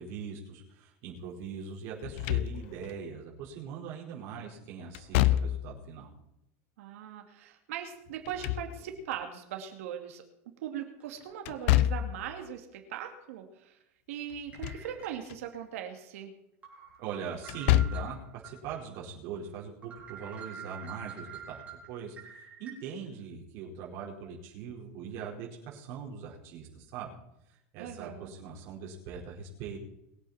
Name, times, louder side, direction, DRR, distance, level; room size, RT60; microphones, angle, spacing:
voice 1, 0.0-6.1 17.0-18.2 18.4-21.6 21.9-27.2 27.7-29.8, right 6 dB, 40° right, -3 dB, 4.8 m, -41 dB
Slam / Thump thud, 2.0-2.9 4.9-5.8 8.1-9.1 11.5-12.3 14.3-14.9 15.3-15.4 17.4-18.2, left 14 dB, 55° left, 0.6 m, -27 dB
voice 2, 6.8-13.8 14.1-16.3 27.8-28.3, right 9 dB, 75° right, 4 dB, 2.6 m, -40 dB
sound 1, 11.0-11.2 11.6-11.7 12.9-13.1 14.5-15.6 16.0-16.1 16.6-18.5 18.9-19.0 19.4-19.5 19.8-22.7, right 7 dB, 20° right, 4.8 m, -47 dB
22.5 x 9.0 x 4.4 m, 0.83 s
supercardioid pair, 170°, 8 cm